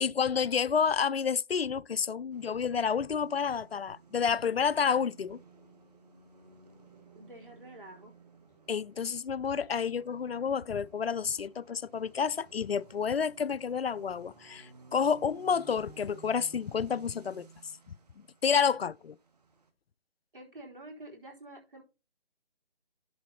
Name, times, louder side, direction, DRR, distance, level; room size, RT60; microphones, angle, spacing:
voice 1, 0.0-5.4 8.7-17.5 18.4-19.2, left 6 dB, 85° left, 0.5 m, -29 dB
sound 1, 2.3-19.7, right 5 dB, 40° right, 1.6 m, -57 dB
voice 2, 7.1-8.1 20.3-21.8, right 1 dB, 60° right, 4.1 m, -48 dB
11.0 x 4.0 x 5.6 m
figure-of-eight pair, 150°, 30 cm